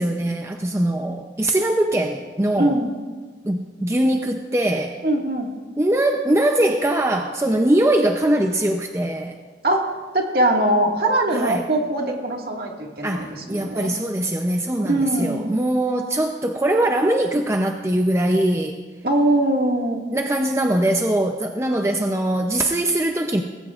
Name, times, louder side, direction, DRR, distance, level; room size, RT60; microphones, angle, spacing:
voice 1, 0.0-2.8 3.4-5.0 5.8-9.4 11.3-11.6 13.0-18.8 20.1-23.4, right 1 dB, 15° right, 3 dB, 0.5 m, -21 dB
voice 2, 2.6-3.0 5.0-5.5 9.6-9.9 10.1-13.9 14.8-15.5 19.0-20.0, right 1 dB, 55° right, 0 dB, 1.9 m, -21 dB
19.5 x 16.0 x 2.4 m, 1.4 s
head